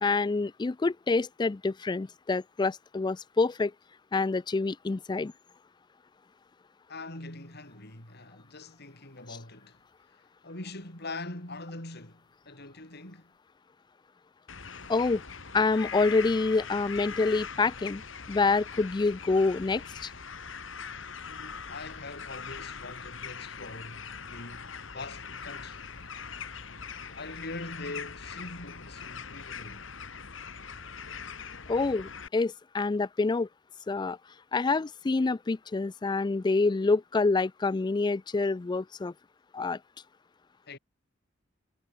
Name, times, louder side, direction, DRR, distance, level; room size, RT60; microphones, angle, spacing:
voice 1, 0.0-3.7 4.1-5.3 14.9-15.2 15.5-18.0 18.3-20.1 31.7-33.5 33.9-34.2 34.5-39.1 39.5-39.8, left 3 dB, 20° left, 0.4 m, -27 dB
voice 2, 6.9-9.8 10.4-13.3 21.3-25.9 27.1-29.9 40.7-40.8, left 2 dB, 55° left, 6.8 m, -43 dB
sound 1, 14.5-32.3, left 6 dB, 75° left, 2.4 m, -42 dB
head